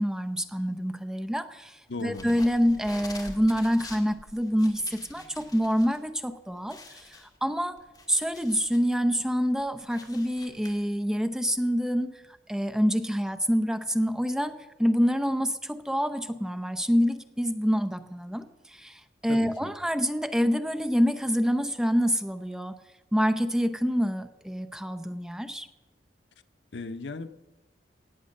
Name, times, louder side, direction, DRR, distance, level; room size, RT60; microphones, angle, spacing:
voice 1, 0.0-7.8 8.1-12.1 12.5-14.5 14.8-22.8 23.1-25.7, equal, 5° right, 9 dB, 0.6 m, -27 dB
voice 2, 1.9-2.3 19.3-19.7 26.7-27.3, left 3 dB, 85° left, 10 dB, 0.8 m, -36 dB
sound 1, 2.0-6.0 6.3-6.4 6.7-8.9 9.3-10.7, left 2 dB, 20° left, 1.8 m, -46 dB
17.5 x 8.2 x 6.5 m, 1.0 s
head